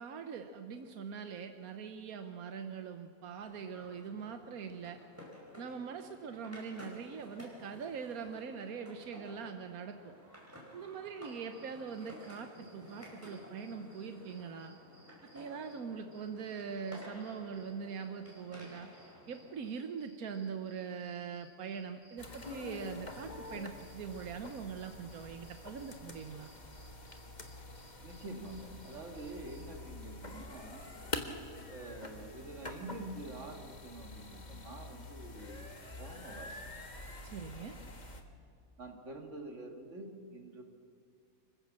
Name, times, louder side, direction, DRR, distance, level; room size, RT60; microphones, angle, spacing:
voice 1, 0.0-5.0 5.6-10.1 10.7-14.7 15.3-18.9 19.3-26.5 37.2-37.7, right 6 dB, 90° right, 7 dB, 1.4 m, -42 dB
sound 1, 3.4-19.7, equal, 10° right, 5.0 m, -54 dB
sound 2, 11.2-15.8 16.1-29.8, equal, 60° left, 4.4 m, -64 dB
sound 3, 22.2-38.2, left 2 dB, 30° left, 1.5 m, -46 dB
voice 2, 28.0-30.8 31.7-35.6 36.0-36.7 38.8-40.6, right 2 dB, 55° right, 3 dB, 2.4 m, -46 dB
26.0 x 15.0 x 7.4 m, 2.4 s
omnidirectional pair, 1.5 m